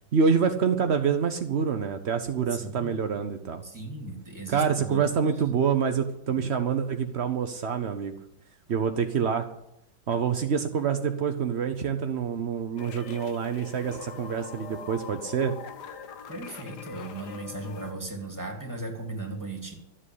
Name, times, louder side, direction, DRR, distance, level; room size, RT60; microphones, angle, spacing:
voice 1, 0.1-3.6 4.5-8.1 8.7-9.5 10.1-15.5, right 6 dB, 65° right, 7 dB, 0.6 m, -26 dB
voice 2, 2.6-2.9 3.6-5.1 16.3-19.7, right 2 dB, 10° right, 1 dB, 2.7 m, -37 dB
sound 1, 12.8-17.9, left 7 dB, 60° left, 1.5 m, -43 dB
13.0 x 7.6 x 10.0 m, 0.79 s
omnidirectional pair, 2.2 m